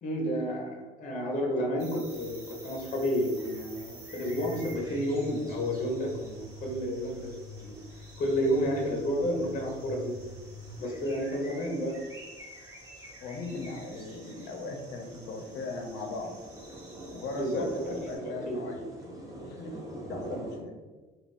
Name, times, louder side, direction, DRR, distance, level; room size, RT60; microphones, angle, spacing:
voice 1, 0.0-7.3 7.6-7.7 8.2-10.1 10.8-12.0 17.3-18.8, equal, 50° left, 0 dB, 0.7 m, -31 dB
sound 1, 1.8-18.2, right 2 dB, 40° right, 1.5 m, -52 dB
sound 2, 2.1-20.6, right 1 dB, 20° right, 0.7 m, -48 dB
sound 3, 4.2-10.8, right 2 dB, 90° right, 0.4 m, -45 dB
voice 2, 13.2-16.3 17.1-19.8 20.1-20.7, left 2 dB, 90° left, 3 dB, 0.6 m, -38 dB
2.4 x 2.3 x 3.4 m, 1.3 s
cardioid pair, 110°, 17 cm